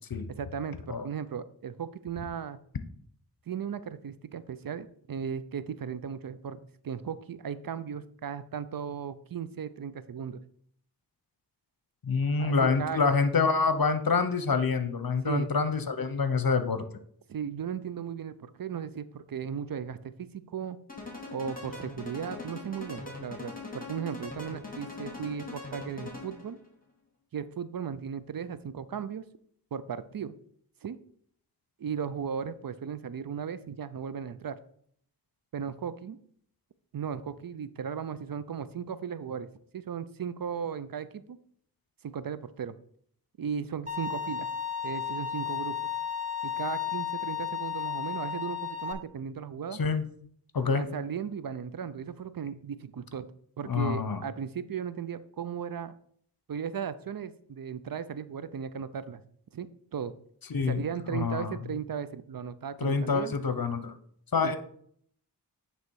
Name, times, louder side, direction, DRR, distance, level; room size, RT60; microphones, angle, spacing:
voice 1, 0.3-2.6 3.5-10.4 12.4-13.0 15.2-15.5 17.3-20.8 21.3-26.6 27.3-29.2 29.7-30.4 30.8-31.0 31.8-34.6 35.5-36.2 36.9-39.5 39.7-41.4 42.0-42.8 43.4-44.5 44.8-45.8 46.4-49.8 50.7-53.3 53.6-55.9 56.5-59.2 59.5-60.1 60.6-63.3 64.4-64.6, right 7 dB, 55° right, 14 dB, 0.5 m, -36 dB
voice 2, 12.0-16.8 49.8-50.0 50.5-50.8 53.7-54.2 60.5-60.8 61.1-61.6 62.8-63.9 64.3-64.6, left 4 dB, 55° left, 10 dB, 0.8 m, -26 dB
sound 1, 20.9-26.5, left 2 dB, 20° left, 2.2 m, -41 dB
Bowed string instrument, 43.9-48.9, left 9 dB, 15° right, 0.9 m, -33 dB
9.4 x 3.1 x 4.7 m, 0.63 s
wide cardioid pair, 45°, 41 cm